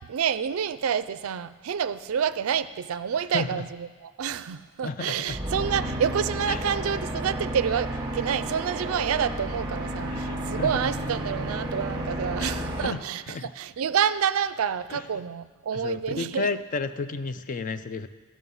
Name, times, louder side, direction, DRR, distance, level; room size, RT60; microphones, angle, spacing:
voice 1, 0.1-16.5, right 8 dB, 70° right, 14 dB, 0.4 m, -28 dB
voice 2, 3.3-3.6 4.8-5.4 6.5-6.6 10.1-10.9 12.4-13.0 13.3-13.5 14.9-15.2 15.7-18.1, left 4 dB, 40° left, 12 dB, 0.4 m, -32 dB
sound 1, 5.3-12.9, right 1 dB, 20° right, 1.1 m, -32 dB
14.0 x 6.3 x 5.5 m, 1.4 s
head